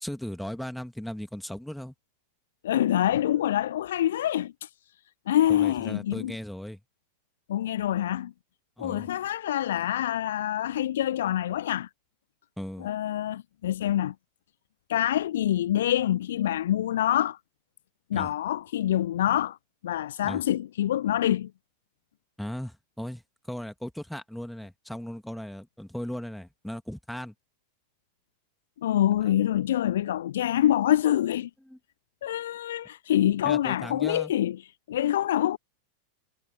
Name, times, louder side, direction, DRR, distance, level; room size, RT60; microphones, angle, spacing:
voice 1, 0.0-1.9 5.5-6.8 8.8-9.1 12.6-12.9 18.1-18.3 20.2-20.4 22.4-23.2 23.5-27.3 31.7-31.8 33.4-34.3, equal, ahead, 2.4 m, -37 dB
voice 2, 2.6-4.7 5.3-6.3 7.5-8.3 8.8-11.9 12.8-14.1 14.9-17.4 18.1-19.6 19.8-21.5 28.8-31.5 32.2-34.6 34.9-35.6, left 12 dB, 60° left, 0.4 m, -26 dB
figure-of-eight pair, 90°, 0 cm